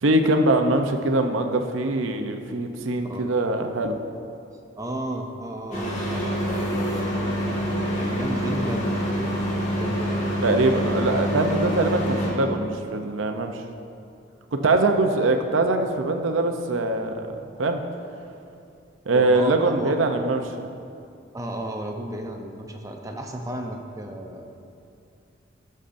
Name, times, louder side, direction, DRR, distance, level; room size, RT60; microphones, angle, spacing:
voice 1, 0.0-4.0 10.4-13.6 14.5-17.3 17.6-17.8 19.1-20.7, right 2 dB, 85° right, 5 dB, 0.6 m, -22 dB
voice 2, 4.8-9.4 9.7-10.7 11.1-11.4 19.1-19.9 21.3-24.4, right 1 dB, 15° right, 2 dB, 0.6 m, -34 dB
sound 1, 5.7-12.3, equal, 35° left, 1.7 m, -26 dB
14.0 x 6.5 x 2.6 m, 2.5 s
head